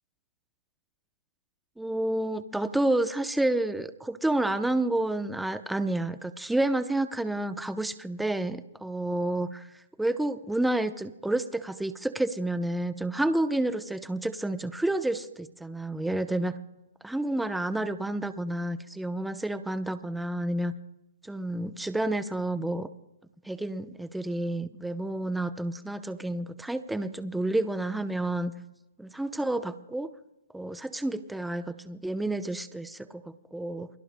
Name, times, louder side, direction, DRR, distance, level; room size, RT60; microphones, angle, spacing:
voice 1, 1.8-9.7 10.0-16.5 17.0-20.7 21.2-22.9 23.4-28.5 29.0-30.1 30.5-33.9, right 1 dB, 5° right, 10 dB, 0.7 m, -30 dB
28.5 x 21.5 x 2.2 m, 0.96 s
hypercardioid pair, 150°, 0 cm